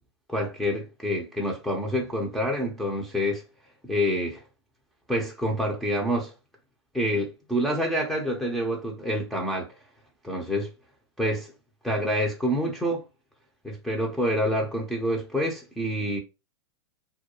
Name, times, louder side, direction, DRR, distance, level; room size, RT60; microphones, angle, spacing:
voice 1, 0.3-3.4 3.8-4.4 5.1-6.3 6.9-9.7 10.2-10.7 11.2-11.5 11.8-13.0 13.6-16.2, equal, ahead, 0.6 m, -27 dB
2.3 x 2.1 x 2.9 m
hypercardioid pair, 105°, 15 cm